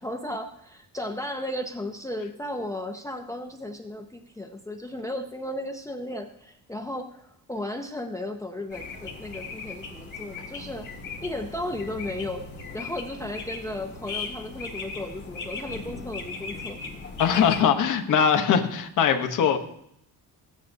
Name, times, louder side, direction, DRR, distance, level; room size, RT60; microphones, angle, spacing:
voice 1, 0.0-10.9 11.2-12.4 12.7-16.9, left 1 dB, 10° left, 0.4 m, -35 dB
sound 1, 8.7-17.6, left 4 dB, 25° left, 1.9 m, -38 dB
voice 2, 17.2-19.6, left 7 dB, 55° left, 1.0 m, -21 dB
14.5 x 9.5 x 2.7 m
cardioid pair, 180°, 38 cm